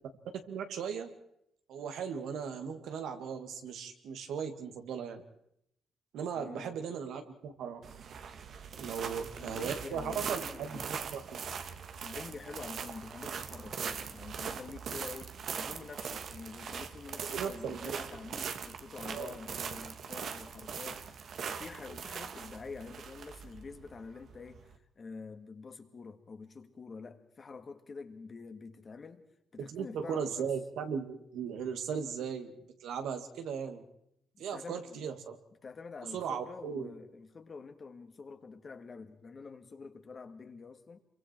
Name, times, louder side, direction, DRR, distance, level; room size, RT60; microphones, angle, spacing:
voice 1, 0.5-1.1 1.7-5.2 6.1-7.8 8.8-11.2 17.3-18.0 19.1-19.3 29.6-32.6 32.8-33.8 34.4-35.4 36.1-36.9, right 7 dB, 80° right, 2.3 m, -37 dB
voice 2, 6.3-6.8 9.0-10.9 12.0-29.3 29.5-30.5 34.3-35.0 35.6-41.0, left 4 dB, 40° left, 2.1 m, -47 dB
sound 1, 7.8-24.7, right 6 dB, 60° right, 1.5 m, -41 dB
26.5 x 23.5 x 4.6 m
cardioid pair, 90°, 0 cm